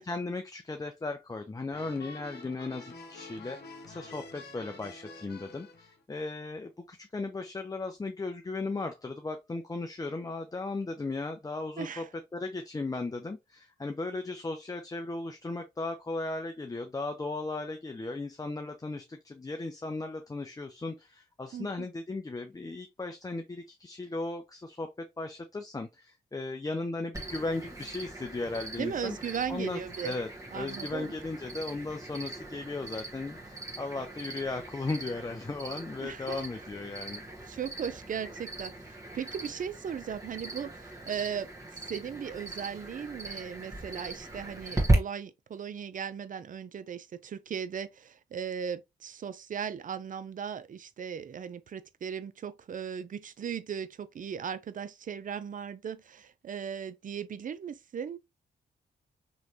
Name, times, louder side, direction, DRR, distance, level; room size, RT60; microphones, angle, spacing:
voice 1, 0.0-3.6 3.9-12.0 12.3-29.2 29.5-30.3 30.5-37.2, left 3 dB, 20° left, 0.5 m, -36 dB
sound 1, 1.7-6.0, left 3 dB, 65° left, 0.9 m, -47 dB
voice 2, 11.8-12.1 21.5-21.9 28.8-30.1 30.5-31.1 36.0-36.4 37.5-41.5 41.9-58.2, right 7 dB, 45° right, 0.4 m, -37 dB
Cricket, 27.1-44.9, right 2 dB, 15° right, 1.4 m, -38 dB
3.0 x 3.0 x 2.7 m
supercardioid pair, 50°, 19 cm